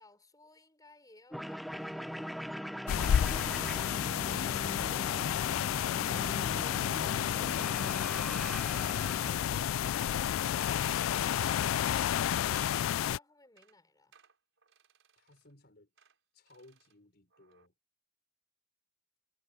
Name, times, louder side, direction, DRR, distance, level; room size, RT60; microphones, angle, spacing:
voice 1, 0.0-2.4 12.9-14.2, left 2 dB, 20° left, 5.9 m, -61 dB
sound 1, 1.3-10.3, equal, ahead, 0.6 m, -41 dB
sound 2, 2.9-13.2, left 10 dB, 90° left, 0.3 m, -31 dB
sound 3, 3.2-4.2 4.5-4.8 5.4-6.1 6.4-6.8 7.1-7.3 7.6-7.8 8.1-8.3 8.8-9.0 9.3-10.0 10.4-10.6 10.9-12.4 12.7-13.2 13.4-13.8 14.1-15.5 16.0-16.2 16.5-17.0 17.3-17.7, right 6 dB, 70° right, 4.8 m, -66 dB
voice 2, 15.2-15.9 16.3-17.7, left 1 dB, 55° left, 5.2 m, -59 dB
head